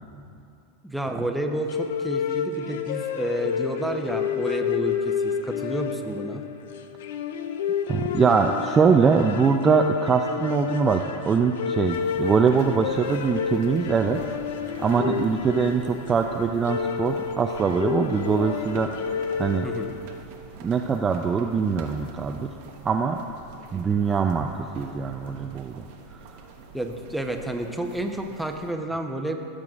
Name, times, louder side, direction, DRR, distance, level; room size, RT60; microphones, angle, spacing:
voice 1, 0.8-6.4 15.0-15.1 19.6-19.9 23.7-23.8 26.7-29.4, right 1 dB, ahead, 3 dB, 0.9 m, -30 dB
sound 1, 1.7-20.2, left 7 dB, 70° left, 0.5 m, -30 dB
voice 2, 7.9-14.2 14.8-19.0 19.4-19.7 20.6-22.5 22.8-23.3 23.7-24.5 24.7-25.9 26.2-26.3, right 5 dB, 25° right, 4 dB, 0.4 m, -23 dB
sound 2, 11.9-28.7, right 5 dB, 60° right, 1.1 m, -46 dB
16.0 x 7.5 x 2.5 m, 2.6 s
hypercardioid pair, 95°, 0 cm